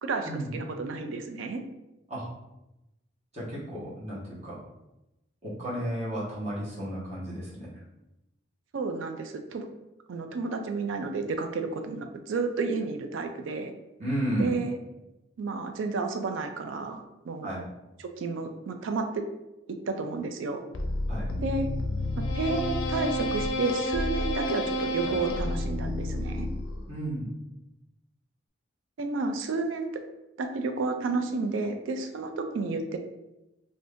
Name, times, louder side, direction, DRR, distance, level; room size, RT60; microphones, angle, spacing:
voice 1, 0.0-1.6 8.7-9.7 10.1-13.7 14.4-14.8 15.4-17.5 18.0-19.2 19.9-20.6 21.4-21.7 22.2-26.5 29.0-30.0 30.4-33.0, right 3 dB, 80° right, 6 dB, 0.4 m, -31 dB
voice 2, 3.3-4.6 5.4-7.7 14.0-14.5 17.4-17.6 21.1-21.3 26.9-27.3, right 1 dB, 35° right, -8 dB, 1.1 m, -33 dB
sound 1, 20.7-27.0, left 1 dB, 75° left, 0.4 m, -30 dB
2.6 x 2.6 x 3.5 m, 0.94 s
head